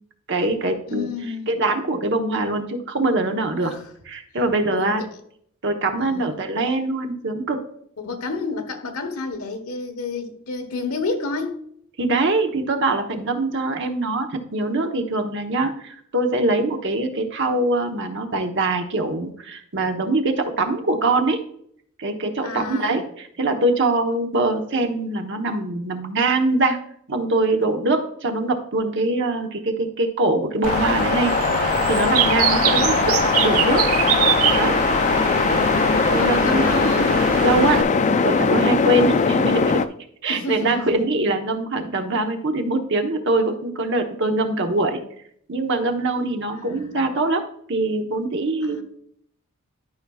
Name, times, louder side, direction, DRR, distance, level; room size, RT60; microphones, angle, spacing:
voice 1, 0.3-1.1 1.5-3.7 4.0-5.0 5.6-7.6 12.0-21.4 22.0-26.8 27.1-33.2 33.4-33.8 34.5-34.8 36.1-36.7 37.4-37.9 38.2-39.8 40.2-45.0 45.5-47.4 47.7-48.8, right 2 dB, 55° right, 1.0 m, -23 dB
voice 2, 0.9-1.5 3.5-3.9 4.7-5.1 6.0-6.4 8.0-11.6 22.4-23.0 32.5-33.2 35.1-37.2 40.3-41.0 46.5-47.0 48.6-48.8, left 3 dB, 85° left, 1.2 m, -30 dB
sound 1, 30.6-39.9, left 4 dB, 35° left, 0.3 m, -20 dB
Bird, 30.6-37.8, right 9 dB, 75° right, 0.5 m, -24 dB
12.0 x 5.6 x 2.3 m
head